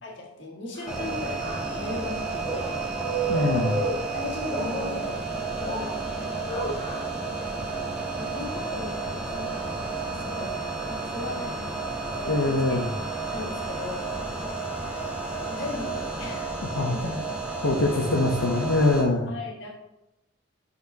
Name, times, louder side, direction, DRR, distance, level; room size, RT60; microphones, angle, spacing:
voice 1, 0.0-2.8 4.1-6.0 6.7-7.6 8.2-10.6 10.9-11.7 12.1-12.8 13.3-14.4 15.4-16.6 16.9-17.1 17.9-18.6 19.3-19.7, left 2 dB, 60° left, -2 dB, 1.7 m, -37 dB
sound 1, 0.7-16.4, right 2 dB, 20° left, 2.4 m, -37 dB
sound 2, 0.9-19.0, right 3 dB, 5° right, 0.9 m, -32 dB
voice 2, 3.3-3.8 12.3-12.9 16.6-17.2 17.6-19.3, left 2 dB, 80° left, -1 dB, 0.7 m, -24 dB
9.4 x 4.1 x 2.8 m, 0.90 s
head